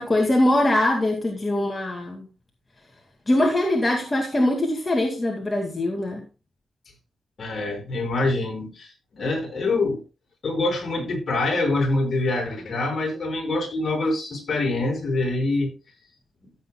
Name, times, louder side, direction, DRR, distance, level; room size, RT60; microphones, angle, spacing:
voice 1, 0.0-2.3 3.3-6.2, left 1 dB, 25° left, 2.3 m, -22 dB
voice 2, 7.4-10.0 10.4-15.7, left 2 dB, 55° left, 5.7 m, -25 dB
14.5 x 8.2 x 2.3 m
cardioid pair, 75°, 0 cm